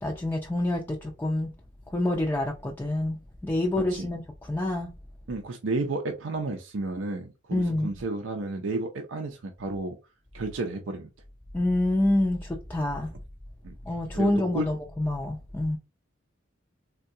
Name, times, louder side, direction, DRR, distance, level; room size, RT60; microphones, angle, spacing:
voice 1, 0.0-1.5 1.9-4.9 7.5-8.0 11.5-13.1 13.9-15.8, left 1 dB, 10° left, 0.4 m, -27 dB
voice 2, 3.8-4.1 5.3-10.0 10.3-11.1 13.6-13.7 14.1-14.7, right 2 dB, 85° right, 0.5 m, -32 dB
3.6 x 2.2 x 2.7 m
head